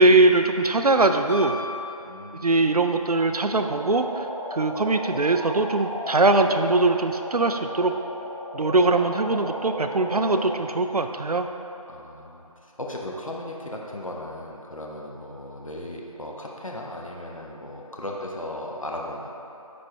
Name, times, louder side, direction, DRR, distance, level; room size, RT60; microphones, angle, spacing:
voice 1, 0.0-1.6 2.4-4.2 4.5-7.9 8.5-11.5, right 2 dB, 80° right, 6 dB, 0.5 m, -21 dB
Piano, 1.3-2.9 5.2-5.3, left 2 dB, 30° right, 1.1 m, -37 dB
voice 2, 2.1-2.5 5.1-5.3 11.9-19.3, left 1 dB, 60° left, -1 dB, 0.9 m, -36 dB
sound 1, 3.5-10.6, equal, 60° right, 1.3 m, -35 dB
9.5 x 3.4 x 3.2 m, 2.9 s
figure-of-eight pair, 180°, 19 cm